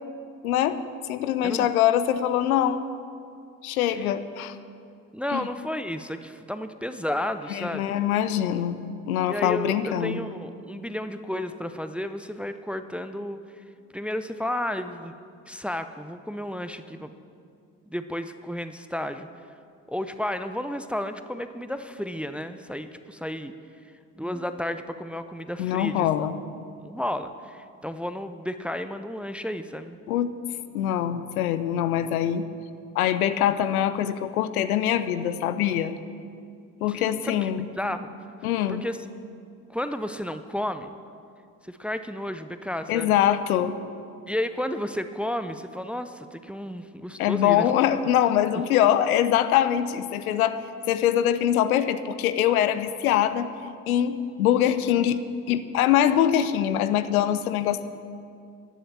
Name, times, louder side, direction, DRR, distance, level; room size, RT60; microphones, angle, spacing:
voice 1, 0.4-0.8 1.1-2.8 3.6-4.5 5.3-5.5 7.5-10.2 25.6-26.3 30.1-30.4 30.7-32.4 32.9-35.9 36.8-37.7 38.4-38.8 42.9-43.7 47.2-50.6 50.9-53.5 53.9-55.2 55.5-57.8, left 10 dB, 70° left, 12 dB, 0.9 m, -23 dB
voice 2, 5.1-7.9 9.3-13.4 13.9-15.1 15.5-17.1 17.9-19.3 19.9-23.5 24.2-26.1 26.8-30.0 36.9-37.5 37.8-38.1 38.7-39.0 39.7-40.9 41.6-43.2 44.3-47.7, left 1 dB, 5° right, 10 dB, 0.6 m, -32 dB
15.5 x 11.0 x 7.3 m, 2.4 s
figure-of-eight pair, 55°, 46 cm